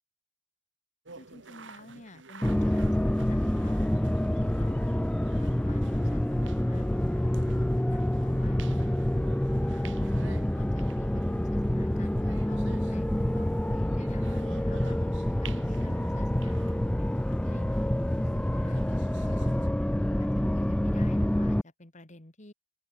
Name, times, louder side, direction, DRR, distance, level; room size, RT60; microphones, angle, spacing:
sound 1, 1.0-19.7, right 5 dB, 75° right, 1.9 m, -52 dB
voice 1, 1.2-3.9 4.2-8.6 9.6-15.0 15.4-17.7 18.1-18.8 19.2-19.7 20.2-22.5, left 1 dB, 40° left, 2.5 m, -51 dB
sound 2, 2.4-21.6, left 1 dB, 5° left, 0.3 m, -27 dB
open air
head